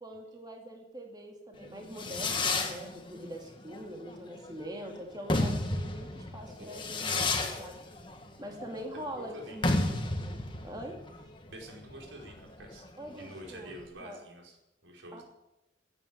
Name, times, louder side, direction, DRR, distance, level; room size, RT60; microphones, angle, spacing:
voice 1, 0.0-7.8 8.4-10.0 10.6-11.0 13.0-14.2 15.1-15.2, equal, 20° right, 1 dB, 2.3 m, -43 dB
Fireworks, 1.6-13.8, left 2 dB, 25° left, 1.8 m, -33 dB
voice 2, 6.6-6.9 8.6-9.6 11.5-14.6 14.8-15.2, right 1 dB, 90° right, 0 dB, 4.9 m, -48 dB
17.0 x 9.1 x 9.3 m, 0.92 s
head